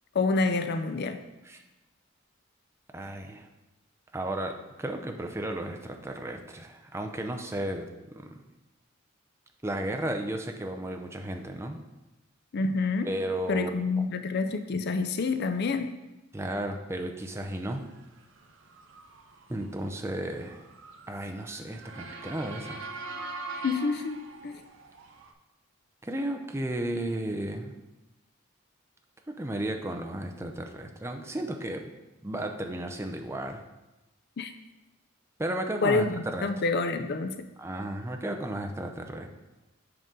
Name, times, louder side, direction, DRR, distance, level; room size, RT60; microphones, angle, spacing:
voice 1, 0.1-1.2 12.5-13.1 13.5-16.0 23.6-24.2 24.4-24.6 34.4-34.5 35.8-37.5, left 3 dB, 55° left, 9 dB, 0.4 m, -27 dB
voice 2, 2.9-3.5 4.1-8.4 9.6-11.8 13.0-13.8 16.3-17.8 19.5-20.6 21.1-22.8 26.0-27.7 29.4-31.9 32.2-33.6 35.4-36.5 37.6-39.3, right 1 dB, 15° right, 4 dB, 0.5 m, -34 dB
Motor vehicle (road) / Siren, 18.0-25.3, right 3 dB, 65° right, 0.7 m, -43 dB
7.7 x 5.3 x 3.7 m, 1.0 s
head